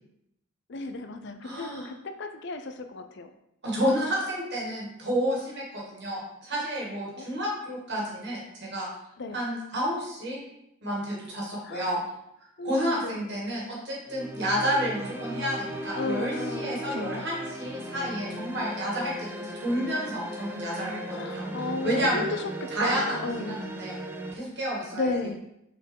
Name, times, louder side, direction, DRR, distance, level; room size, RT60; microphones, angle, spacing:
voice 1, 0.7-3.3 7.2-7.3 9.2-9.4 11.6-11.9 12.6-13.4 15.9-17.3 21.1-23.8 24.9-25.4, left 3 dB, 55° left, 8 dB, 0.5 m, -34 dB
voice 2, 1.4-1.9 3.6-8.9 9.3-10.4 10.8-12.0 12.6-21.5 21.8-22.2 22.7-24.0 24.3-25.4, equal, 50° right, -4 dB, 2.2 m, -30 dB
sound 1, 14.1-24.3, right 1 dB, 10° right, 0.5 m, -37 dB
5.9 x 4.5 x 4.6 m, 0.81 s
head